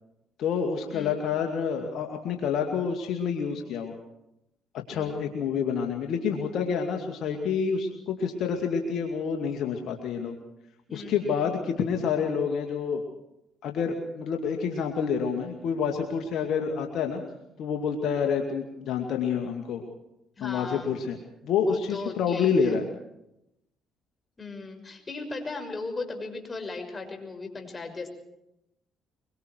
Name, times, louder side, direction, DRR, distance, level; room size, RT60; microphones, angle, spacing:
voice 1, 0.4-3.9 4.9-10.4 10.9-13.0 13.6-17.2 17.6-19.8 20.4-21.2 21.4-22.8, left 6 dB, 65° left, 3 dB, 2.3 m, -28 dB
voice 2, 4.9-5.2 10.9-11.6 20.4-20.9 21.6-22.8 24.4-28.1, left 3 dB, 30° left, 4 dB, 6.1 m, -37 dB
24.5 x 23.5 x 4.7 m, 0.85 s
supercardioid pair, 65°, 0 cm